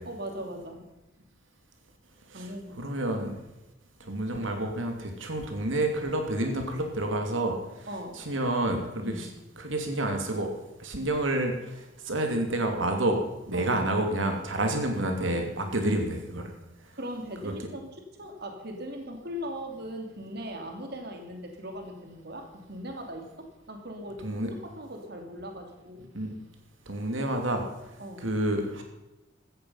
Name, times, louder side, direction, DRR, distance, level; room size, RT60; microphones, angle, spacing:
voice 1, 0.1-0.8 2.3-2.8 7.9-8.2 9.0-9.3 13.5-13.8 15.8-16.0 16.9-26.1 28.0-28.3, equal, 55° right, 4 dB, 2.8 m, -39 dB
voice 2, 2.8-3.4 4.0-7.9 8.2-9.3 9.6-10.5 10.8-13.2 13.5-16.5 17.4-17.5 24.2-24.5 26.1-26.3 26.9-27.6 28.2-28.8, right 1 dB, 90° right, 4 dB, 2.8 m, -29 dB
17.0 x 14.0 x 5.7 m, 0.99 s
head